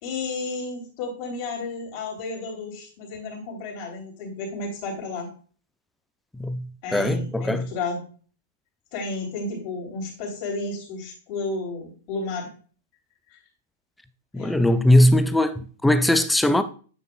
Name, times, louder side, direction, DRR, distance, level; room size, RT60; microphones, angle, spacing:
voice 1, 0.0-5.3 6.8-8.0 8.9-12.5 13.3-13.4 14.3-14.6, left 3 dB, 40° left, 3.2 m, -32 dB
voice 2, 6.4-7.7 14.3-16.6, left 1 dB, 5° left, 0.5 m, -20 dB
8.5 x 6.5 x 2.3 m
figure-of-eight pair, 105°, 0 cm